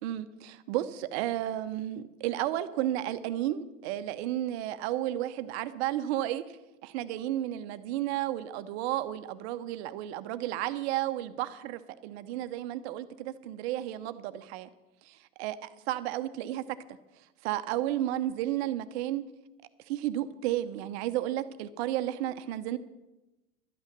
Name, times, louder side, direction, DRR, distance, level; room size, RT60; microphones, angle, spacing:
voice 1, 0.0-6.6 6.8-14.7 15.4-16.8 17.4-19.2 19.9-22.8, right 13 dB, 50° right, 11 dB, 0.9 m, -32 dB
12.0 x 8.9 x 6.8 m, 1.0 s
hypercardioid pair, 100°, 40 cm